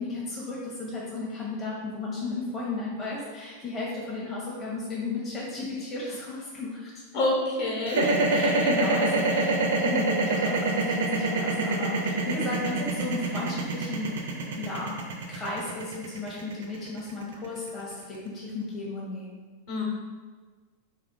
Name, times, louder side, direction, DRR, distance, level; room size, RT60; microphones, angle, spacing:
voice 1, 0.0-6.9 8.3-15.0 15.3-19.4, left 3 dB, 25° left, -6 dB, 0.8 m, -34 dB
voice 2, 7.1-8.3 19.7-19.8, left 1 dB, 55° left, -3 dB, 1.1 m, -27 dB
sound 1, 7.9-18.0, right 3 dB, 60° right, 0.5 m, -26 dB
3.5 x 2.4 x 3.8 m, 1.4 s
figure-of-eight pair, 90°, 0 cm